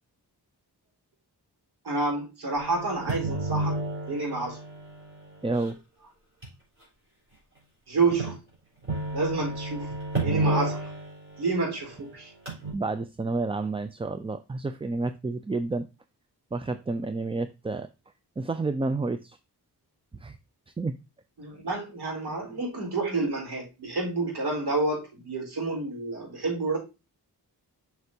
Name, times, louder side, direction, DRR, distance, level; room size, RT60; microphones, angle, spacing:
voice 1, 1.8-3.8 4.1-4.6 7.9-8.4 9.1-10.0 10.2-10.9 11.4-12.3 21.4-26.8, right 3 dB, 75° right, -1 dB, 4.3 m, -29 dB
sound 1, 2.6-5.7 6.4-6.5 8.1-8.4 8.8-12.0 12.5-12.7, right 2 dB, 30° right, 4.4 m, -31 dB
voice 2, 5.4-5.8 12.7-15.9 16.5-17.9 18.4-19.4 20.2-20.4 20.8-20.9 22.3-22.4, right 3 dB, 15° right, 10 dB, 0.3 m, -30 dB
7.9 x 5.9 x 2.7 m, 0.27 s
wide cardioid pair, 120°, 40 cm